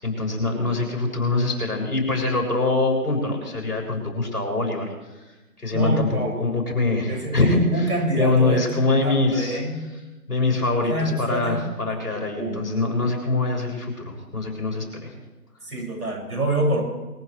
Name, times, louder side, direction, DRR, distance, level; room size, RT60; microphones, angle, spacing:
voice 1, 0.0-4.9 5.6-7.9 8.2-9.6 10.3-15.1, left 3 dB, 70° left, -1 dB, 6.8 m, -24 dB
voice 2, 5.7-6.3 7.1-9.8 10.7-11.6 12.1-12.7 15.6-16.8, right 1 dB, 65° right, -1 dB, 6.7 m, -26 dB
24.0 x 16.0 x 3.4 m, 1.1 s
figure-of-eight pair, 175°, 48 cm